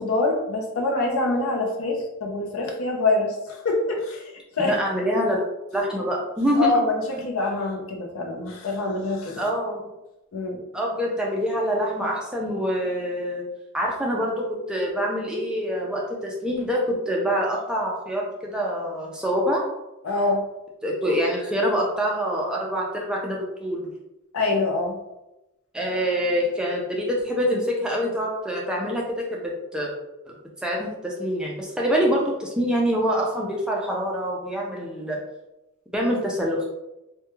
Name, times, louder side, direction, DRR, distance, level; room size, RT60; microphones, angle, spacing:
voice 1, 0.0-4.3 4.6-4.7 6.6-9.4 10.3-10.6 20.0-20.4 24.3-25.0, left 2 dB, 70° left, 1 dB, 0.5 m, -25 dB
voice 2, 4.7-5.4 5.7-6.8 9.4-9.9 10.7-13.4 13.7-19.6 20.8-23.9 25.7-29.9 30.3-30.4 30.6-35.2 35.9-36.6, equal, 5° right, -3 dB, 0.3 m, -25 dB
2.2 x 2.1 x 3.0 m, 0.94 s
head